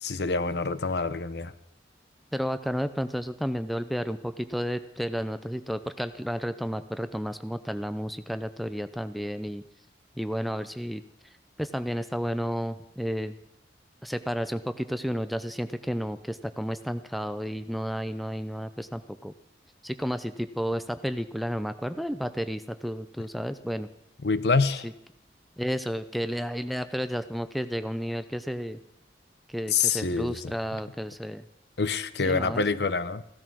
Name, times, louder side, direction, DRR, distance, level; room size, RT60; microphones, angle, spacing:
voice 1, 0.0-1.5 24.2-24.9 29.7-30.5 31.8-33.2, left 4 dB, 70° left, 0.8 m, -26 dB
voice 2, 2.3-9.6 10.2-11.0 11.6-13.3 14.0-19.3 19.8-23.9 24.8-24.9 25.6-28.8 29.5-31.5 32.2-32.6, equal, ahead, 0.5 m, -32 dB
16.0 x 12.5 x 6.2 m
head